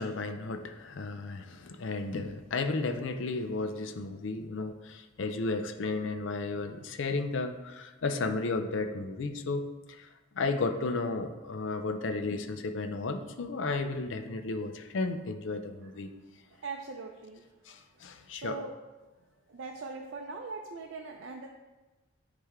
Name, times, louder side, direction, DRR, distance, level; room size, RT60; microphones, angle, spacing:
voice 1, 0.0-10.1 10.4-16.1 17.7-18.6, left 3 dB, 75° left, 8 dB, 0.5 m, -33 dB
voice 2, 16.5-17.4 18.3-18.7 19.5-21.5, right 4 dB, 80° right, 1 dB, 0.5 m, -41 dB
9.5 x 3.3 x 3.5 m, 1.2 s
head